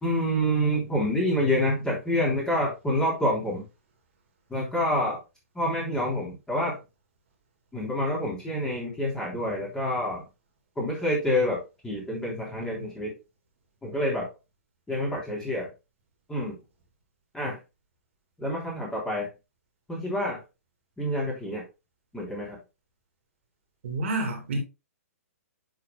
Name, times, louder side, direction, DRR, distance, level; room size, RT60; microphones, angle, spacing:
voice 1, 0.0-3.6 4.5-5.2 5.5-6.8 7.7-10.2 10.8-13.1 13.8-14.3 14.9-15.7 16.3-16.5 17.3-17.6 18.4-19.3 19.9-20.4 21.0-21.6 22.1-22.6, equal, 5° left, 3.4 m, -27 dB
voice 2, 23.8-24.6, right 2 dB, 50° right, 2.7 m, -29 dB
9.8 x 6.2 x 2.2 m
figure-of-eight pair, 120°, 8 cm